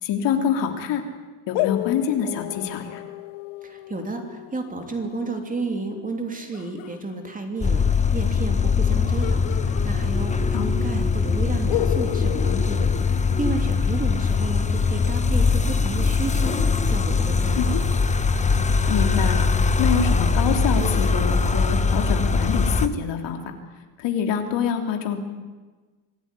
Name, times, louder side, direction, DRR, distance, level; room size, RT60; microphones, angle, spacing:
voice 1, 0.0-1.0 1.5-3.0 10.5-10.7 17.5-17.8 18.9-19.5 19.8-23.4 24.0-25.2, left 7 dB, 60° left, 5 dB, 3.4 m, -25 dB
sound 1, 1.5-7.0 9.2-10.7 10.9-11.0 11.7-13.9, left 18 dB, 75° left, 0.9 m, -33 dB
voice 2, 3.6-17.8, right 3 dB, 15° right, 4 dB, 3.1 m, -32 dB
sound 2, 7.6-22.9, left 4 dB, 15° left, 1.0 m, -21 dB
26.0 x 17.0 x 9.9 m, 1.3 s
cardioid pair, 155°, 49 cm